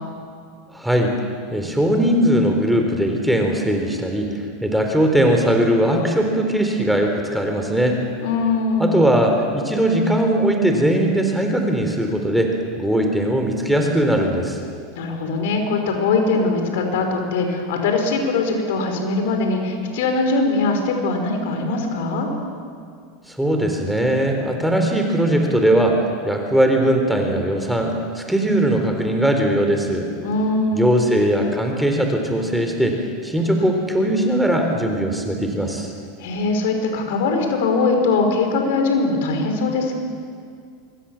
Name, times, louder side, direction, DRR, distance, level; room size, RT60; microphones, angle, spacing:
voice 1, 0.7-1.1 1.5-4.3 4.6-8.0 8.8-12.5 12.8-14.6 23.3-30.1 30.7-35.9, right 1 dB, 5° right, 3 dB, 3.9 m, -19 dB
voice 2, 8.2-8.9 15.0-22.3 30.2-30.9 36.2-40.0, left 3 dB, 65° left, 4 dB, 5.5 m, -21 dB
25.0 x 23.0 x 7.4 m, 2.2 s
hypercardioid pair, 90°, 0 cm